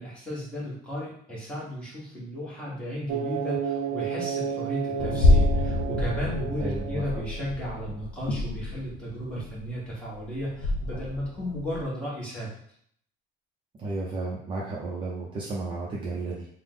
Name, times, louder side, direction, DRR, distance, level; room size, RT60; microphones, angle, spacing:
voice 1, 0.0-12.5, equal, 5° left, -7 dB, 1.1 m, -34 dB
sound 1, 3.1-7.8, right 8 dB, 80° right, 0.5 m, -32 dB
sound 2, 5.0-11.8, left 2 dB, 80° left, 0.6 m, -27 dB
voice 2, 6.6-7.0 13.8-16.5, right 3 dB, 25° right, -4 dB, 0.5 m, -33 dB
3.4 x 2.0 x 3.7 m, 0.64 s
cardioid pair, 165°, 19 cm